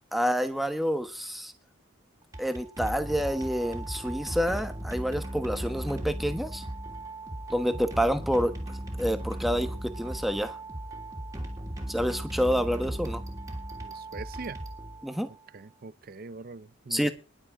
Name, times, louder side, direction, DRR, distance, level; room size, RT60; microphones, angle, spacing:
voice 1, 0.1-1.5 2.4-6.6 7.5-8.6 9.0-10.6 11.9-13.2 15.0-15.3 16.9-17.1, equal, ahead, 1.2 m, -28 dB
sound 1, 2.2-15.4, right 1 dB, 15° right, 3.1 m, -37 dB
voice 2, 13.8-14.6 15.5-17.1, right 3 dB, 45° right, 0.6 m, -42 dB
21.0 x 7.6 x 4.9 m
head